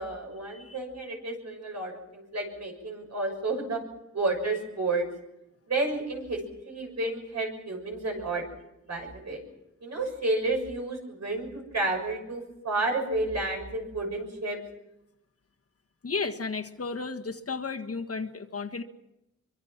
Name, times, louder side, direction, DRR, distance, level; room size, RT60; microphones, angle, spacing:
voice 1, 0.0-3.8 4.1-5.1 5.7-6.4 6.6-8.4 8.9-9.4 9.8-14.6, right 2 dB, 65° right, 2 dB, 6.4 m, -31 dB
voice 2, 16.0-18.8, left 4 dB, 50° left, 4 dB, 1.6 m, -33 dB
24.0 x 24.0 x 5.9 m, 0.87 s
wide cardioid pair, 110°, 29 cm